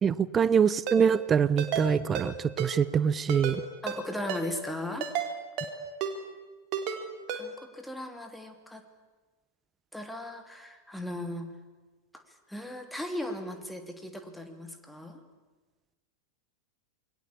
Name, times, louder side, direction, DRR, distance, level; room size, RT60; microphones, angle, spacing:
voice 1, 0.0-3.6, right 7 dB, 20° right, 18 dB, 1.0 m, -24 dB
Ringtone, 0.9-1.0 1.6-1.9 2.1-2.3 2.6-2.7 3.3-3.6 3.9-4.0 4.3-4.4 5.0-5.3 5.6-5.7 6.0-6.1 6.7-7.0 7.3-7.4, right 7 dB, 40° right, 3.6 m, -32 dB
voice 2, 3.8-5.1 7.3-8.8 9.9-11.5 12.1-15.2, left 1 dB, 5° left, 6 dB, 3.1 m, -37 dB
28.5 x 22.0 x 8.7 m, 1.3 s
figure-of-eight pair, 90°, 0 cm